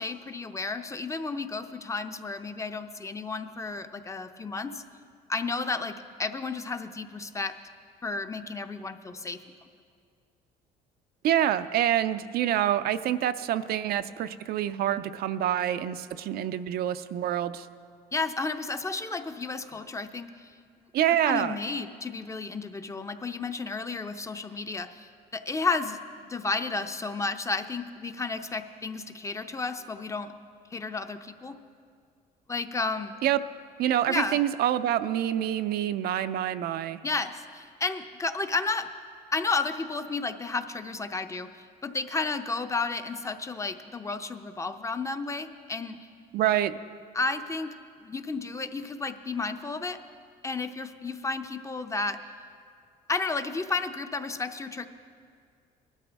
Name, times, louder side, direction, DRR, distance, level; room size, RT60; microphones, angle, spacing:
voice 1, 0.0-4.8 5.3-7.5 8.0-9.4 18.1-20.9 21.2-26.0 26.3-30.3 30.7-31.5 32.5-33.1 34.1-34.4 37.0-38.9 39.3-46.0 47.1-47.7 48.0-50.0 50.4-52.2 53.1-54.9, left 3 dB, 20° left, 9 dB, 0.6 m, -32 dB
voice 2, 11.2-17.7 20.9-21.6 33.2-33.4 33.8-37.0 46.3-46.7, right 11 dB, 65° right, 12 dB, 0.5 m, -26 dB
19.0 x 12.5 x 3.5 m, 2.2 s
cardioid pair, 110°, 17 cm